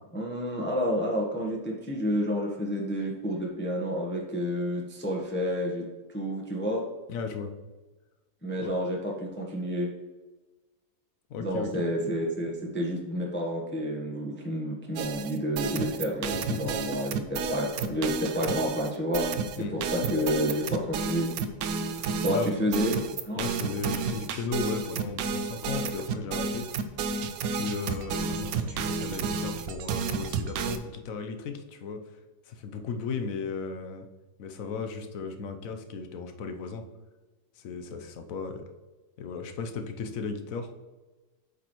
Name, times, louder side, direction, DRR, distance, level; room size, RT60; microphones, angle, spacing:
voice 1, 0.1-5.8 6.1-6.9 8.4-9.9 11.4-21.3 22.2-23.4, equal, 10° left, -2 dB, 0.8 m, -30 dB
voice 2, 7.1-7.5 8.6-8.7 11.3-11.7 16.3-16.7 19.6-19.8 21.9-22.5 23.4-26.7 27.5-32.0 32.5-34.1 34.4-36.8 37.6-38.7 39.2-40.7, left 5 dB, 65° left, 6 dB, 1.1 m, -36 dB
sound 1, 15.0-30.8, right 5 dB, 75° right, 1.0 m, -31 dB
8.1 x 5.0 x 3.0 m, 1.2 s
omnidirectional pair, 1.7 m